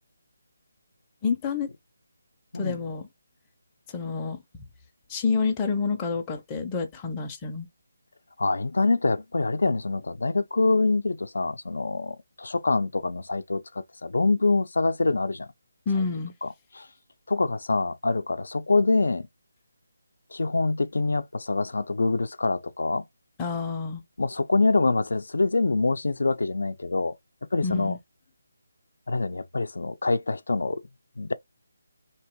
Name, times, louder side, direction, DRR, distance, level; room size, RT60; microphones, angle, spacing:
voice 1, 1.2-1.7 2.5-3.1 3.9-4.6 5.1-7.7 15.9-16.3 23.4-24.0 27.6-28.0, left 5 dB, 10° left, 0.5 m, -28 dB
voice 2, 8.4-15.5 16.0-16.1 16.4-16.5 16.7-16.9 17.3-19.3 20.3-23.0 24.2-27.2 27.5-28.0 29.1-30.8 31.2-31.3, left 3 dB, 80° left, 0.5 m, -25 dB
3.5 x 2.9 x 4.5 m
hypercardioid pair, 175°, 0 cm